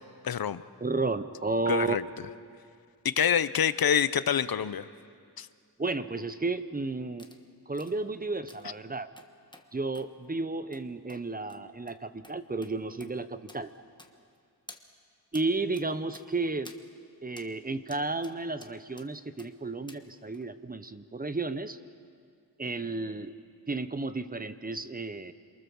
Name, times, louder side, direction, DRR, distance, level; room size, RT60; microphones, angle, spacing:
voice 1, 0.2-0.6 1.7-2.0 3.0-4.9 5.4-5.5, left 8 dB, 65° left, 15 dB, 0.8 m, -26 dB
voice 2, 0.8-2.0 5.8-7.3 7.7-9.1 9.7-13.7 15.3-16.7 17.2-21.8 22.6-23.3 23.7-25.3, right 3 dB, 20° right, 12 dB, 0.8 m, -32 dB
sound 1, 7.2-7.4 7.7-7.9 8.5-8.7 9.2-9.7 9.9-10.1 10.7-10.8 11.1-11.2 11.5-11.6 11.9-12.0 12.2-12.4 12.6-12.7 13.0-13.1 13.5-13.6 14.0-14.4 14.7-14.8 15.3-15.5 15.7-15.9 16.1-16.3 16.6-16.8 17.4-17.5 17.9-18.4 18.6-19.1 19.4-19.5 19.9-20.0 20.3-20.4, left 2 dB, 10° left, 1.3 m, -51 dB
28.5 x 23.5 x 7.1 m, 2.2 s
wide cardioid pair, 150°, 39 cm